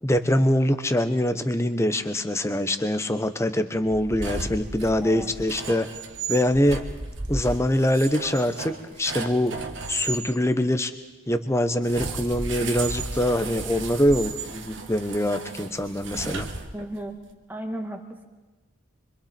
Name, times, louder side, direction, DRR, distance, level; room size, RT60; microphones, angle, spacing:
voice 1, 0.0-5.9 6.3-6.8 7.3-9.6 9.9-10.9 11.3-16.5, left 1 dB, 15° left, 9 dB, 0.9 m, -24 dB
sound 1, 3.8-10.2 11.8-17.1, right 3 dB, 60° right, 1.6 m, -34 dB
voice 2, 5.0-5.3 16.7-17.2 17.5-18.3, right 1 dB, 10° right, 4 dB, 1.7 m, -35 dB
25.5 x 25.0 x 4.4 m, 1.2 s
head